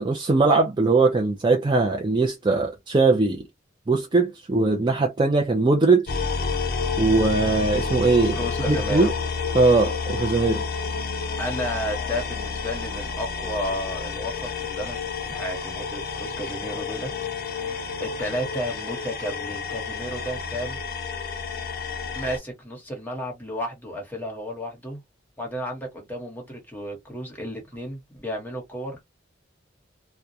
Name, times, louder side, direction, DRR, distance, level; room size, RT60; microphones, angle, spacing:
voice 1, 0.0-3.4 3.9-6.1 7.0-8.4 8.7-9.1 9.5-10.6, right 3 dB, 25° right, 0.4 m, -20 dB
sound 1, 6.1-22.4, left 4 dB, 50° left, 0.6 m, -30 dB
voice 2, 8.3-9.1 11.4-17.1 17.4-20.8 22.1-25.0 25.4-29.0, equal, 10° left, 1.0 m, -32 dB
2.3 x 2.1 x 2.7 m
head